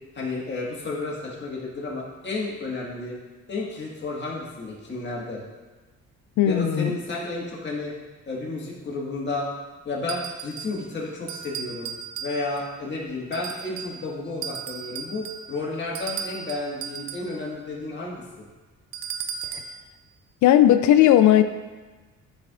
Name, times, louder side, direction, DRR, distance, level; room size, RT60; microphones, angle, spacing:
voice 1, 0.2-3.2 3.5-5.4 6.4-7.9 8.3-9.5 9.9-11.9 12.2-18.5, left 3 dB, 35° left, -4 dB, 1.8 m, -32 dB
voice 2, 6.4-6.9 19.5-19.6 20.4-21.4, left 11 dB, 75° left, 10 dB, 0.5 m, -16 dB
sound 1, 10.1-10.8 11.3-12.7 13.3-14.0 14.4-17.4 18.9-19.8, right 7 dB, 65° right, 0.6 m, -36 dB
10.5 x 4.3 x 2.5 m, 1.3 s
cardioid pair, 90°, 30 cm